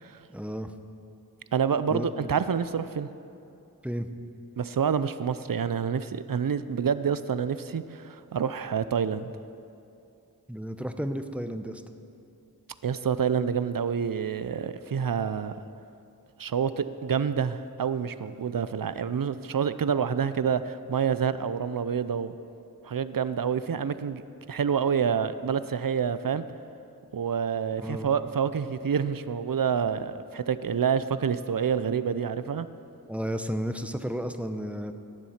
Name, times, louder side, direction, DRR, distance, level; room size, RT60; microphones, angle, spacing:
voice 1, 0.3-0.7 1.9-2.1 3.8-4.1 10.5-11.8 27.8-28.1 33.1-34.9, equal, 5° right, 7 dB, 0.7 m, -32 dB
voice 2, 1.5-3.1 4.6-9.3 12.8-15.6 16.4-22.3 22.8-26.4 27.1-32.7, right 7 dB, 65° right, 13 dB, 0.5 m, -28 dB
18.5 x 7.2 x 5.8 m, 2.7 s
wide cardioid pair, 40°, 37 cm